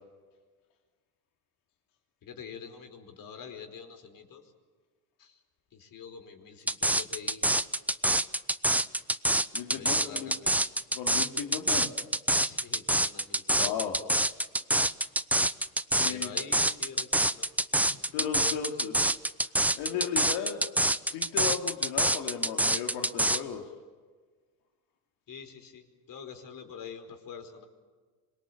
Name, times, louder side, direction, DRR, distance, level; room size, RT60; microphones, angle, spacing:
voice 1, 2.2-4.4 5.2-5.3 5.7-7.4 9.7-10.5 12.4-13.7 16.0-17.5 25.3-25.8 26.1-27.7, left 6 dB, 55° left, 6 dB, 5.0 m, -45 dB
sound 1, 6.7-23.4, right 1 dB, 5° right, 0.9 m, -26 dB
voice 2, 9.5-10.4 10.9-11.9 13.5-14.0 15.9-16.3 17.7-19.1 19.7-20.6 21.0-23.7, left 8 dB, 75° left, 1 dB, 3.1 m, -35 dB
26.0 x 21.5 x 8.7 m, 1.5 s
supercardioid pair, 95°, 41 cm